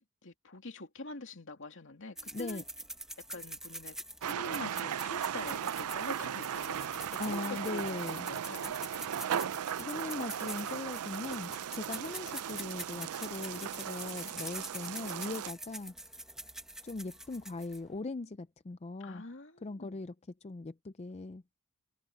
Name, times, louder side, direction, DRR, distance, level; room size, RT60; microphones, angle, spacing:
voice 1, 0.2-2.6 3.3-8.7 19.0-20.0, left 2 dB, 60° left, 2.6 m, -45 dB
sound 1, 2.2-18.0, right 1 dB, ahead, 1.0 m, -45 dB
voice 2, 2.3-2.6 7.2-8.3 9.8-15.9 16.8-19.2 19.6-20.1 20.4-21.4, left 3 dB, 30° left, 0.4 m, -40 dB
sound 2, 4.2-15.5, right 9 dB, 85° right, 0.4 m, -37 dB
head